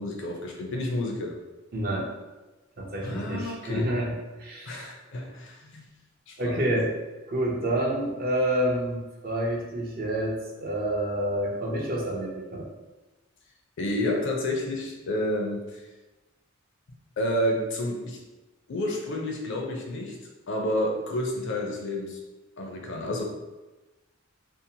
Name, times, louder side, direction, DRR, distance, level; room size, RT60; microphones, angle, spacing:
voice 1, 0.0-1.3 3.0-3.9 4.7-5.8 6.3-6.7 13.8-15.8 17.2-18.2 18.7-20.2 20.5-22.2 22.6-23.2, left 1 dB, 65° left, 1 dB, 0.5 m, -30 dB
voice 2, 1.7-2.1 2.8-4.1 4.4-4.9 6.4-6.9 7.3-12.7, right 1 dB, 45° right, -1 dB, 0.5 m, -28 dB
2.7 x 2.1 x 2.7 m, 1.1 s
head